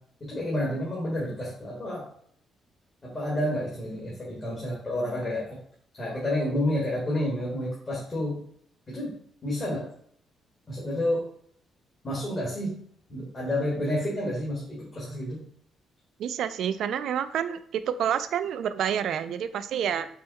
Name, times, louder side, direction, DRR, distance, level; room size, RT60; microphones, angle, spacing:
voice 1, 0.2-2.1 3.0-5.6 6.0-8.4 8.9-9.1 9.4-9.8 10.7-11.2 12.0-12.8 13.1-15.4, left 1 dB, 30° left, -5 dB, 1.7 m, -29 dB
voice 2, 16.2-20.1, right 9 dB, 75° right, 12 dB, 0.3 m, -28 dB
5.4 x 2.2 x 4.0 m, 0.63 s
cardioid pair, 90°, 0 cm